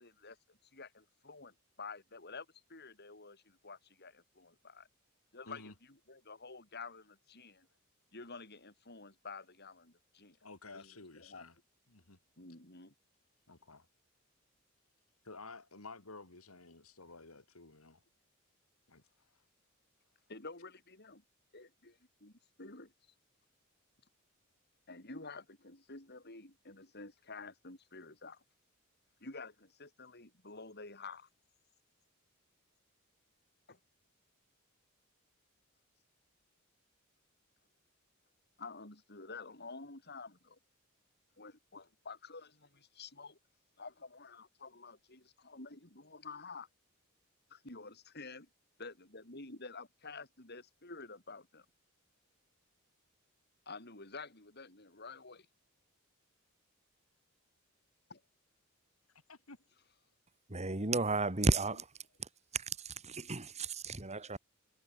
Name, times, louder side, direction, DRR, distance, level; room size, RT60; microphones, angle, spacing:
voice 1, 0.0-4.9 5.3-7.7 8.1-10.4 10.7-11.5 12.4-12.9 20.3-21.2 21.5-22.9 24.9-28.4 29.2-31.3 33.7-33.8 38.6-40.6 41.4-43.4 43.8-46.7 47.5-48.5 48.8-51.7 53.7-55.5 58.1-58.2 59.7-60.0 61.7-61.8, left 4 dB, 50° left, 7.3 m, -50 dB
voice 2, 10.4-11.5 11.9-12.2 13.5-13.9 15.2-18.0 18.9-19.0 59.3-59.6, left 3 dB, 85° left, 3.4 m, -52 dB
voice 3, 60.5-61.9 62.2-64.4, right 3 dB, 30° right, 2.6 m, -33 dB
head